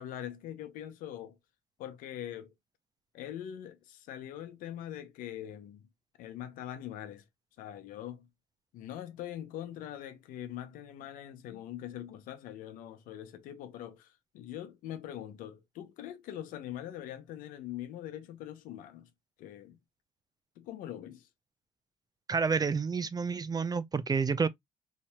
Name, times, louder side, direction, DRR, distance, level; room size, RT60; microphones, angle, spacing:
voice 1, 0.0-1.4 1.8-2.5 3.1-5.9 6.2-7.2 7.6-8.3 8.7-19.1 19.4-19.8 20.6-21.3, left 11 dB, 80° left, 0.8 m, -43 dB
voice 2, 22.3-24.5, right 5 dB, 30° right, 0.5 m, -29 dB
4.5 x 2.7 x 2.2 m
supercardioid pair, 70°, 14 cm